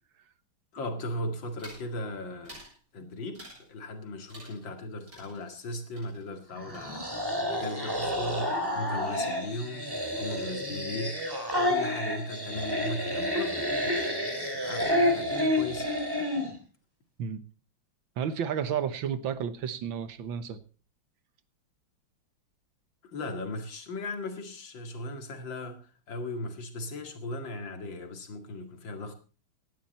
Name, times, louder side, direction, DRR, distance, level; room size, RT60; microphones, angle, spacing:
voice 1, 0.7-2.5 2.9-14.1 14.5-15.9 23.1-29.1, left 2 dB, 65° left, 2.8 m, -37 dB
sound 1, 1.6-1.9 2.4-2.8 3.3-3.7 4.3-4.8 5.1-7.4 7.6-8.2 8.5-9.0, equal, 40° right, 8.2 m, -51 dB
sound 2, 6.5-16.5, left 1 dB, 10° right, 3.3 m, -30 dB
voice 2, 18.2-20.6, right 8 dB, 70° right, 1.8 m, -32 dB
18.0 x 11.5 x 4.3 m
omnidirectional pair, 2.3 m